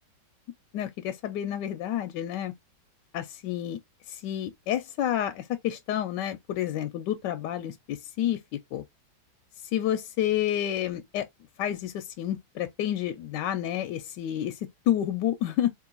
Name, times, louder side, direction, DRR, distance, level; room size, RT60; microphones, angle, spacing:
voice 1, 0.7-2.5 3.1-3.8 4.1-8.4 8.7-8.8 9.7-11.3 11.6-15.7, left 11 dB, 75° left, 1.1 m, -29 dB
3.7 x 2.9 x 3.8 m
omnidirectional pair, 2.0 m